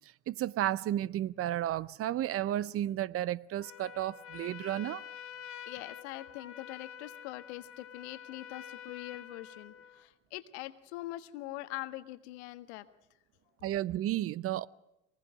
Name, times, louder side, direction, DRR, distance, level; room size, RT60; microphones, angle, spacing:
voice 1, 0.3-5.0 13.6-14.7, right 13 dB, 40° right, 0.7 m, -32 dB
Trumpet, 3.6-10.1, left 8 dB, 40° left, 2.1 m, -48 dB
voice 2, 5.7-12.9, left 17 dB, 70° left, 1.5 m, -43 dB
23.0 x 20.0 x 6.3 m
hypercardioid pair, 75°, 34 cm